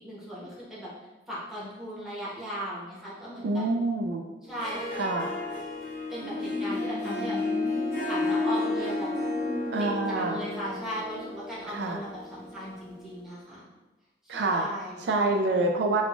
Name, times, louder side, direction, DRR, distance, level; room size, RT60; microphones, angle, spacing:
voice 1, 0.0-0.9 1.3-3.6 4.4-5.1 6.1-7.4 8.0-9.1 9.8-13.7 14.2-15.3, equal, ahead, -9 dB, 1.1 m, -37 dB
voice 2, 3.4-4.2 5.0-5.3 9.7-10.4 11.7-12.0 14.3-14.7 15.0-16.0, right 2 dB, 65° right, 3 dB, 0.3 m, -26 dB
Harp, 4.4-13.0, left 2 dB, 50° left, 0.8 m, -32 dB
sound 1, 6.2-11.0, equal, 30° right, 1.0 m, -39 dB
5.2 x 2.4 x 2.4 m, 1.1 s
head